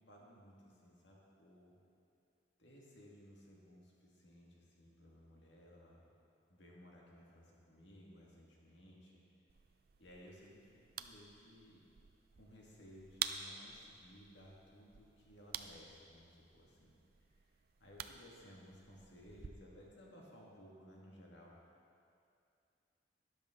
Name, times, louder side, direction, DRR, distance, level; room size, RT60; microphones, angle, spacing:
voice 1, 0.1-1.8 2.6-6.1 6.5-9.2 10.0-11.8 12.4-16.9 17.4-21.5, equal, 75° left, -4 dB, 2.2 m, -59 dB
sound 1, 9.5-19.5, right 9 dB, 55° right, 0.4 m, -49 dB
12.5 x 10.0 x 3.9 m, 2.5 s
head